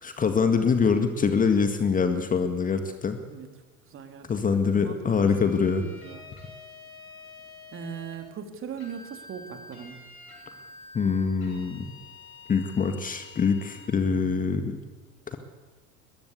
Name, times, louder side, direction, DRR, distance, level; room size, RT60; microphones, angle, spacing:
voice 1, 0.0-3.2 4.3-5.8 10.9-11.9 12.5-14.8 15.3-15.4, left 5 dB, 20° left, 7 dB, 1.9 m, -24 dB
voice 2, 3.9-5.4 5.7-6.3 7.7-10.0, right 7 dB, 30° right, 6 dB, 3.2 m, -40 dB
sound 1, 5.3-8.2 8.8-13.9, left 3 dB, 80° left, 7.8 m, -47 dB
22.0 x 21.5 x 8.3 m, 1.3 s
figure-of-eight pair, 80°, 43 cm